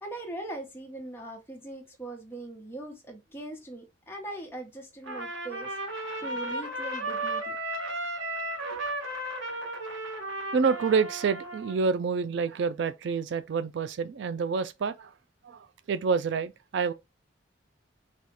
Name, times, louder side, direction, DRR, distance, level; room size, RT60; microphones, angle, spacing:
voice 1, 0.0-5.7 6.2-7.6 8.7-8.8, right 2 dB, 10° left, 1.2 m, -40 dB
Trumpet, 5.0-11.8, right 2 dB, 85° right, 1.4 m, -34 dB
voice 2, 10.5-15.1 15.4-16.9, right 5 dB, 60° right, 0.3 m, -28 dB
4.2 x 2.4 x 4.7 m
head